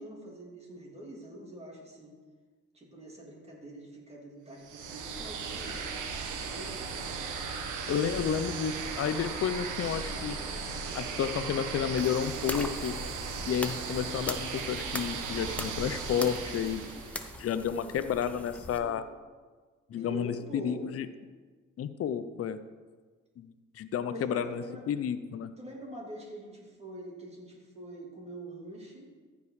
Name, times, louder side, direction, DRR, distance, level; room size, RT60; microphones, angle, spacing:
voice 1, 0.0-2.1 2.7-5.9 6.4-6.8 18.8-19.0 19.9-20.8 24.1-24.8 25.4-29.1, right 1 dB, 20° right, -2 dB, 3.0 m, -45 dB
sound 1, 4.6-17.4, right 5 dB, 80° right, 1.3 m, -37 dB
voice 2, 7.9-10.4 10.9-12.9 13.4-16.8 17.4-19.0 19.9-21.1 21.8-22.6 23.4-23.5 23.8-25.5, left 8 dB, 50° left, 11 dB, 0.6 m, -31 dB
sound 2, 12.0-18.8, left 1 dB, 5° left, 0.8 m, -41 dB
14.5 x 5.4 x 4.9 m, 1.4 s
cardioid pair, 90°, 30 cm